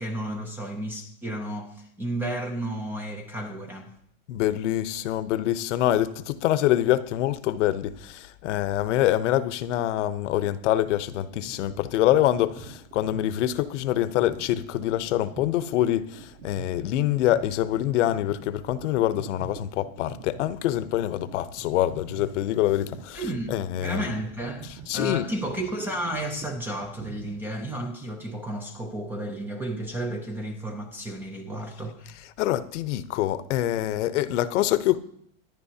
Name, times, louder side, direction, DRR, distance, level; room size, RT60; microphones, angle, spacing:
voice 1, 0.0-3.8 23.1-32.1, right 1 dB, 5° right, 0.4 m, -32 dB
voice 2, 4.3-23.2 23.5-24.1 24.9-25.3 32.4-35.0, left 13 dB, 70° left, 0.9 m, -25 dB
sound 1, 11.2-27.4, right 5 dB, 40° right, 1.4 m, -46 dB
24.0 x 10.5 x 2.8 m
supercardioid pair, 170°, 37 cm